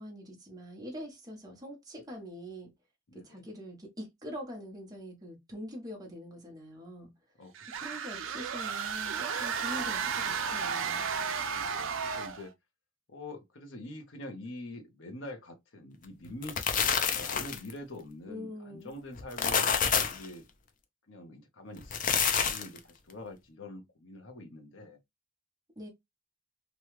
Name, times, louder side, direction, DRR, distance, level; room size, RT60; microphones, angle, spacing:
voice 1, 0.0-2.7 3.1-7.1 7.8-11.1 18.3-18.9 25.8-25.9, equal, 20° right, 1.0 m, -44 dB
voice 2, 3.1-3.4 7.4-7.5 11.5-12.5 13.1-19.7 20.0-20.4 21.1-25.0, left 1 dB, 70° left, 0.9 m, -45 dB
sound 1, 7.5-12.5, right 6 dB, 80° right, 0.5 m, -33 dB
sound 2, 16.2-17.7 19.2-20.3 21.8-22.8, left 7 dB, 40° left, 0.5 m, -28 dB
3.0 x 2.3 x 3.0 m
head